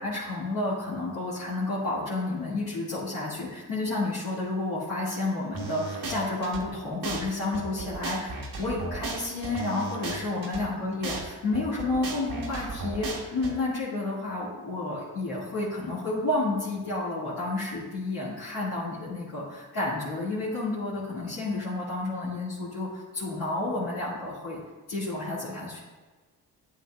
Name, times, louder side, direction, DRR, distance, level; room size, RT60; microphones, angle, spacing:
voice 1, 0.0-24.6 24.9-25.8, left 2 dB, 60° left, -10 dB, 2.3 m, -31 dB
sound 1, 5.5-6.6 7.0-7.2 7.5-10.6 11.0-11.2 11.5-13.5, right 3 dB, 55° right, 1.6 m, -35 dB
8.7 x 7.9 x 2.5 m, 1.3 s
supercardioid pair, 55°, 41 cm